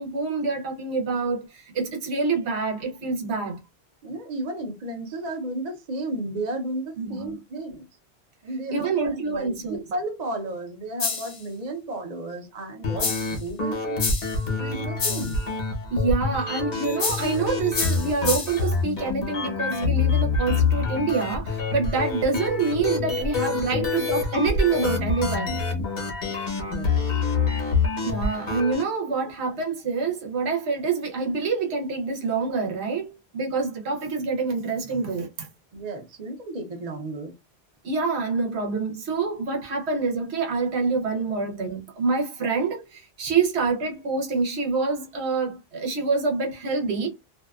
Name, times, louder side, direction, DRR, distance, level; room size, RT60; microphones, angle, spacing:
voice 1, 0.0-3.6 7.0-7.3 8.7-9.8 14.7-14.8 15.9-25.6 28.0-35.5 37.8-47.1, right 4 dB, 90° right, 1.0 m, -26 dB
voice 2, 4.0-7.9 8.4-14.1 14.4-15.4 23.7-23.8 26.6-27.2 35.7-37.3, right 2 dB, 45° right, 0.7 m, -33 dB
sound 1, 11.0-11.4 13.0-13.4 14.0-14.4 15.0-15.4 17.0-17.4 17.7-18.7, left 5 dB, 45° left, 0.4 m, -28 dB
sound 2, 12.8-28.8, left 4 dB, 65° left, 1.1 m, -26 dB
2.6 x 2.2 x 2.3 m
omnidirectional pair, 1.1 m